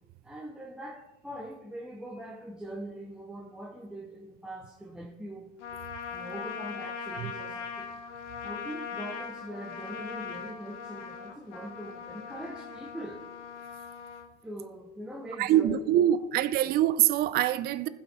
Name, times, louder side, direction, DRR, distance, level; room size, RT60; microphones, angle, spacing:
voice 1, 0.2-5.5 6.1-8.0 8.4-13.2 14.4-16.6, right 1 dB, ahead, 0.8 m, -42 dB
Trumpet, 5.6-14.3, left 6 dB, 70° left, 1.4 m, -40 dB
voice 2, 15.4-17.9, right 12 dB, 25° right, 0.4 m, -24 dB
15.5 x 5.5 x 4.3 m
hypercardioid pair, 95°, 37 cm